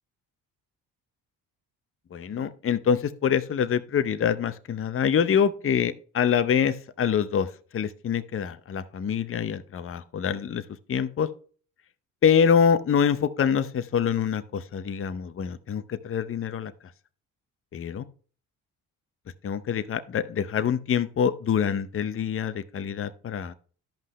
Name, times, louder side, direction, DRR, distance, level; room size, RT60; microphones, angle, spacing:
voice 1, 2.1-7.5 7.7-10.6 10.9-11.3 12.2-16.7 17.7-18.0 19.4-23.5, left 7 dB, 35° left, 12 dB, 0.7 m, -25 dB
12.0 x 5.5 x 3.1 m, 0.40 s
supercardioid pair, 70°, 40 cm